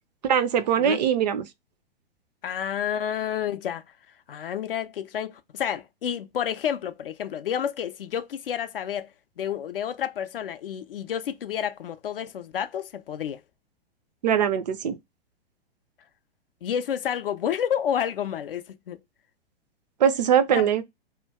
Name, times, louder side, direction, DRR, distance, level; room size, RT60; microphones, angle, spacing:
voice 1, 0.2-1.5 14.2-15.0 20.0-20.8, right 8 dB, 45° right, 0.4 m, -22 dB
voice 2, 2.4-3.8 4.3-9.1 9.4-13.4 16.6-19.0 20.5-20.7, left 9 dB, 65° left, 0.4 m, -30 dB
2.2 x 2.2 x 3.3 m
figure-of-eight pair, 105°, 31 cm